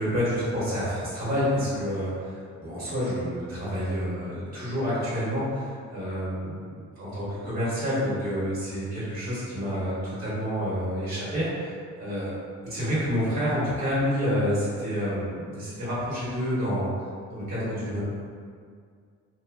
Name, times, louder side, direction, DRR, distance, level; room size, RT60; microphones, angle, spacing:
voice 1, 0.0-12.4 12.7-16.9 17.3-18.0, equal, 30° right, -9 dB, 0.9 m, -28 dB
3.1 x 2.0 x 2.2 m, 2.1 s
cardioid pair, 150°, 30 cm